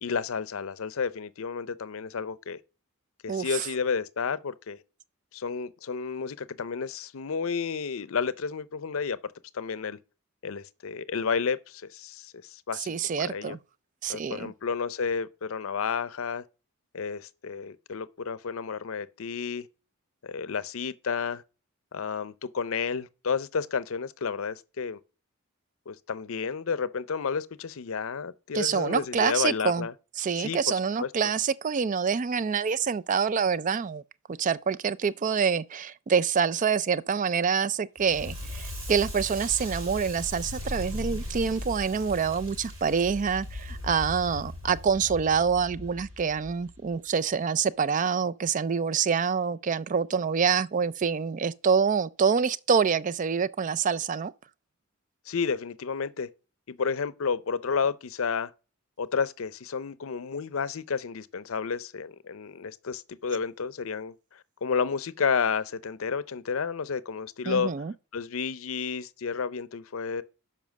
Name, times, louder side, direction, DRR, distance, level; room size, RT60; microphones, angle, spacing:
voice 1, 0.0-2.6 3.2-4.8 5.3-9.2 9.5-10.0 10.4-12.9 13.2-13.6 14.1-16.4 16.9-19.7 20.2-21.4 21.9-25.0 25.9-29.9 30.4-31.1 55.3-56.3 56.7-58.5 59.0-67.7 68.1-70.2, left 5 dB, 70° left, 0.6 m, -31 dB
voice 2, 3.3-3.6 12.8-13.6 14.0-14.5 28.5-29.9 30.2-34.0 34.3-54.3 67.5-67.9, right 6 dB, 35° right, 0.4 m, -26 dB
Crackle, 38.0-46.9, left 1 dB, 75° right, 4.6 m, -38 dB
7.2 x 5.6 x 6.3 m
head